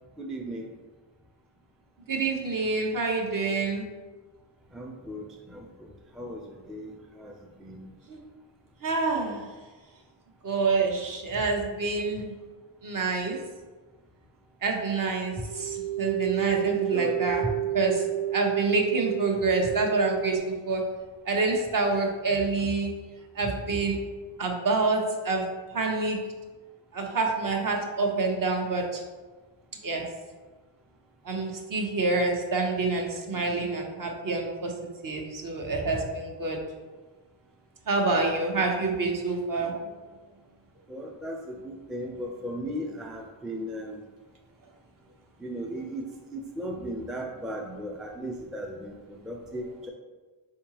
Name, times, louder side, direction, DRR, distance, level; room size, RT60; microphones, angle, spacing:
voice 1, 0.2-0.7 4.7-6.9 7.2-7.3 7.6-7.8 16.9-17.2 40.9-44.0 45.4-46.1 46.3-49.9, equal, ahead, 0 dB, 0.4 m, -36 dB
voice 2, 2.1-3.9 8.1-8.2 8.8-9.4 10.4-12.3 12.8-13.4 14.6-17.4 17.7-18.0 18.3-20.8 21.2-22.9 23.3-24.0 24.4-25.4 25.7-26.2 26.9-29.0 29.8-30.0 31.2-34.7 35.0-36.6 37.9-39.9, right 3 dB, 45° right, 1 dB, 1.0 m, -27 dB
sound 1, 15.4-20.4, right 13 dB, 85° right, 0.7 m, -30 dB
4.7 x 3.5 x 2.9 m, 1.3 s
cardioid pair, 80°, 47 cm